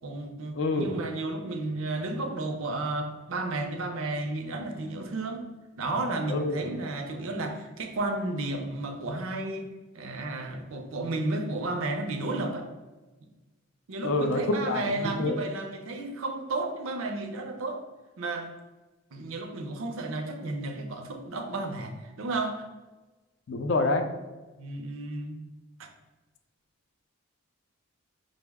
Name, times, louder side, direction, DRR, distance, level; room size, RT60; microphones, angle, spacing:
voice 1, 0.0-5.5 5.8-12.7 13.9-17.8 18.2-18.5 19.1-22.7 24.6-25.4 25.8-25.9, right 2 dB, 75° right, 5 dB, 0.5 m, -33 dB
voice 2, 0.6-0.9 6.3-6.6 14.0-15.4 23.5-24.1, left 2 dB, 60° left, 6 dB, 0.4 m, -27 dB
5.2 x 2.0 x 3.5 m, 1.2 s
head